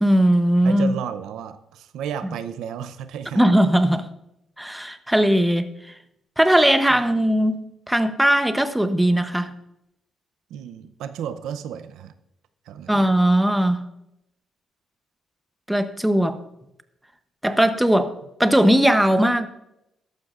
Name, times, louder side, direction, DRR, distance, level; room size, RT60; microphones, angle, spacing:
voice 1, 0.0-1.0 3.3-4.1 4.6-5.9 6.4-9.5 12.9-13.8 15.7-16.4 17.4-19.5, right 1 dB, 5° right, 0.8 m, -19 dB
voice 2, 0.6-3.6 6.9-7.0 10.5-12.1 12.7-13.0, right 8 dB, 85° right, 0.6 m, -33 dB
13.5 x 11.5 x 2.5 m
cardioid pair, 90°, 0 cm